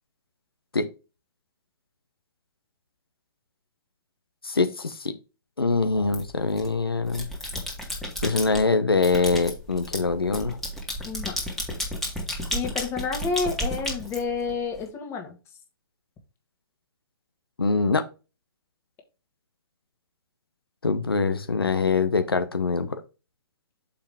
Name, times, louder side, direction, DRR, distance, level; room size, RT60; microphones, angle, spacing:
voice 1, 4.4-5.1 5.6-7.3 8.2-10.6 17.6-18.0 20.8-23.0, left 4 dB, 85° left, 9 dB, 0.9 m, -24 dB
sound 1, 6.1-6.7 7.1-8.6 9.0-14.8, equal, 5° left, 1.9 m, -32 dB
voice 2, 12.5-15.4, left 5 dB, 20° left, 4 dB, 1.8 m, -29 dB
6.8 x 5.2 x 3.5 m, 0.31 s
figure-of-eight pair, 125°, 12 cm